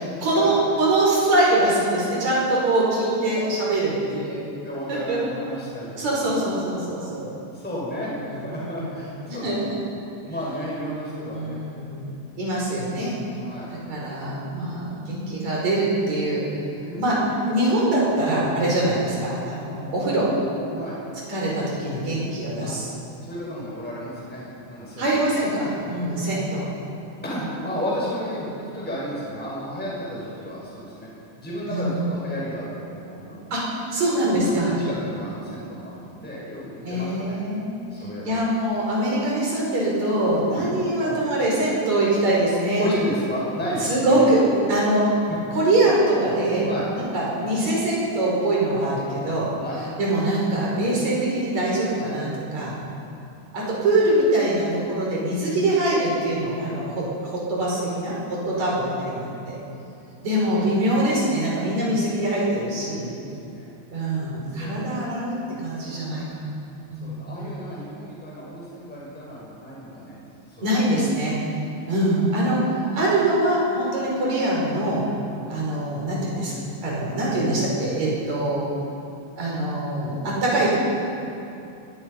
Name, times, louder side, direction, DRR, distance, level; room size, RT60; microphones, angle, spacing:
voice 1, 0.2-4.4 4.9-5.2 6.0-7.3 8.1-8.2 8.6-8.8 9.3-9.6 11.3-12.1 12.4-13.1 13.7-16.4 17.0-17.2 17.5-20.3 21.3-22.9 25.0-26.7 31.7-32.0 33.5-33.6 33.9-34.7 36.8-42.9 43.9-44.4 44.7-45.1 45.5-49.5 49.8-52.8 53.5-57.0 57.5-59.6 60.2-63.1 63.9-66.5 66.9-67.5 70.6-71.4 71.9-75.1 75.5-76.5 76.8-78.6 79.4-80.8, right 1 dB, 35° right, -5 dB, 6.6 m, -23 dB
voice 2, 4.6-5.9 6.2-6.3 6.8-7.0 7.5-9.5 10.2-11.9 13.4-13.7 16.8-17.1 20.7-21.0 22.6-22.7 23.2-25.2 27.2-31.1 31.4-33.5 34.4-34.6 34.9-37.4 37.9-38.4 40.5-40.7 41.0-41.2 42.8-44.3 45.3-45.4 46.6-46.9 49.6-49.8 53.0-53.2 58.4-58.6 59.2-59.4 63.5-63.7 64.6-64.8 65.8-66.3 67.0-70.2 70.5-70.6, equal, ahead, -6 dB, 5.9 m, -33 dB
23.0 x 20.0 x 5.7 m, 2.8 s
omnidirectional pair, 5.6 m